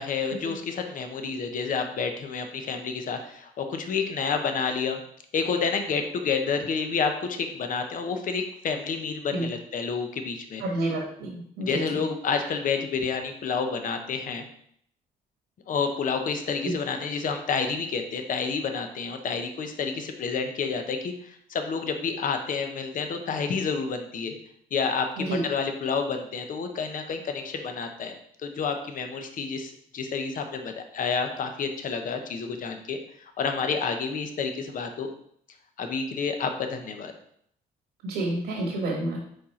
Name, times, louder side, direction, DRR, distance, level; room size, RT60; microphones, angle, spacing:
voice 1, 0.0-5.0 5.3-10.6 11.6-14.4 15.7-24.4 24.7-28.1 28.4-35.1 35.8-37.1, left 5 dB, 55° left, 6 dB, 0.9 m, -29 dB
voice 2, 10.6-12.0 25.2-25.4 38.0-39.2, right 1 dB, 85° right, -2 dB, 1.7 m, -29 dB
5.2 x 4.2 x 4.3 m, 0.67 s
cardioid pair, 80°, 16 cm